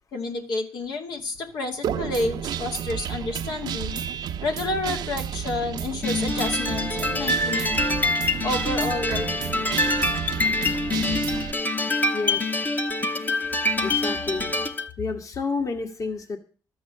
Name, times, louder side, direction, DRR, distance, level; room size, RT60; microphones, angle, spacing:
voice 1, 0.1-4.0 4.4-7.9 8.4-9.7, left 2 dB, 85° left, 3 dB, 2.4 m, -30 dB
Guitar, 1.8-11.5, right 9 dB, 80° right, 0.7 m, -31 dB
sound 1, 6.0-14.9, left 2 dB, 25° left, 0.8 m, -25 dB
voice 2, 12.1-12.6 13.8-14.5 15.0-16.4, left 4 dB, 50° left, 6 dB, 1.8 m, -30 dB
13.0 x 7.8 x 7.5 m, 0.39 s
cardioid pair, 110°, 7 cm